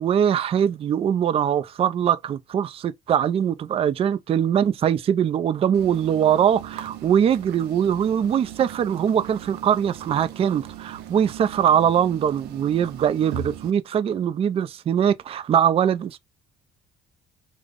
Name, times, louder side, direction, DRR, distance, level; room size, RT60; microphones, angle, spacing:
voice 1, 0.0-16.2, right 9 dB, 35° right, 0.4 m, -22 dB
sound 1, 5.7-13.7, right 10 dB, 85° right, 0.5 m, -39 dB
3.3 x 2.1 x 3.5 m
cardioid pair, 110°, 17 cm